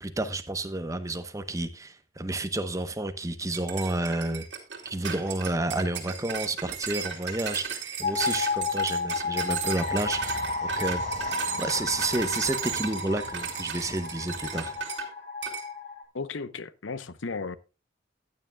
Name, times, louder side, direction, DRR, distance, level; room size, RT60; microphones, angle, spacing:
voice 1, 0.0-4.5 4.8-11.0 11.6-14.7, right 2 dB, 15° right, 0.9 m, -30 dB
sound 1, 3.5-15.1 15.4-15.7, right 7 dB, 65° right, 2.7 m, -35 dB
sound 2, 8.0-16.0, left 3 dB, 40° left, 2.3 m, -32 dB
sound 3, 9.7-14.8, right 1 dB, 40° right, 1.6 m, -45 dB
voice 2, 16.1-17.6, left 4 dB, 90° left, 0.8 m, -35 dB
15.0 x 9.6 x 2.3 m
head